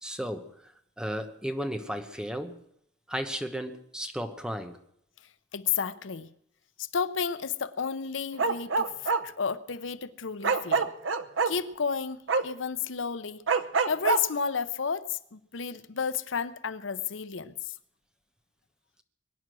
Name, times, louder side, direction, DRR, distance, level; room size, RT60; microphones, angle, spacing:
voice 1, 0.0-2.6 3.1-4.8, equal, 5° right, 1.0 m, -34 dB
voice 2, 5.5-6.3 6.9-10.9 11.5-13.4 13.9-17.7, left 6 dB, 85° left, 0.7 m, -32 dB
Bark, 8.3-9.2 10.4-11.5 12.3-12.4 13.5-14.2, right 4 dB, 85° right, 0.8 m, -25 dB
22.5 x 9.7 x 6.2 m
head